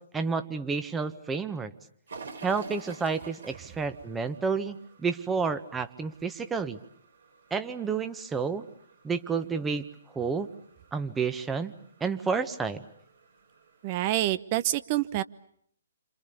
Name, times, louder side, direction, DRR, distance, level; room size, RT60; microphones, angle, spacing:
voice 1, 0.0-1.7 2.4-6.8 7.5-8.7 9.0-9.9 10.1-10.5 10.9-11.7 12.0-12.8, right 5 dB, 10° right, 9 dB, 1.5 m, -30 dB
sound 1, 2.1-13.9, right 4 dB, 70° right, 7.9 m, -51 dB
voice 2, 13.8-15.2, right 15 dB, 35° right, 14 dB, 1.1 m, -27 dB
29.5 x 27.0 x 7.1 m, 0.66 s
figure-of-eight pair, 130°, 0 cm